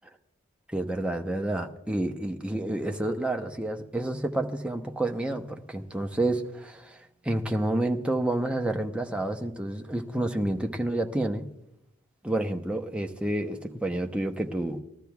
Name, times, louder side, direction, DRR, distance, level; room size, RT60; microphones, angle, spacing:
voice 1, 0.7-7.0 7.2-11.5 12.2-14.8, right 1 dB, 5° right, 3 dB, 0.8 m, -29 dB
20.0 x 13.5 x 2.3 m, 0.85 s
head